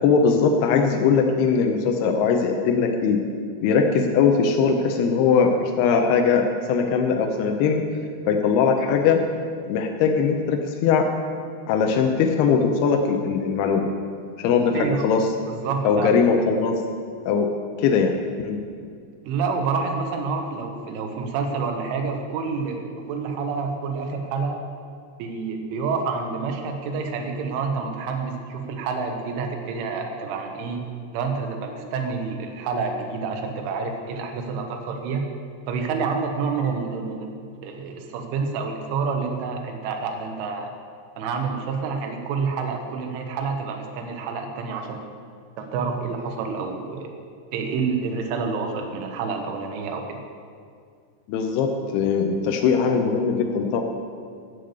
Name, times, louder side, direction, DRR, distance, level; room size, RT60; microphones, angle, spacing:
voice 1, 0.0-3.2 3.6-7.8 8.3-9.2 9.7-11.1 11.7-13.9 14.4-15.2 15.8-16.7 17.3-17.5 17.8-18.6 51.3-53.8, left 5 dB, 80° left, 3 dB, 2.3 m, -20 dB
voice 2, 14.7-15.1 15.5-16.1 19.2-24.6 25.2-30.9 31.1-35.2 35.7-37.3 37.6-40.7 41.2-45.1 45.6-47.1 47.5-50.2, right 5 dB, 85° right, 3 dB, 3.6 m, -28 dB
12.5 x 6.8 x 8.0 m, 2.2 s
omnidirectional pair, 5.5 m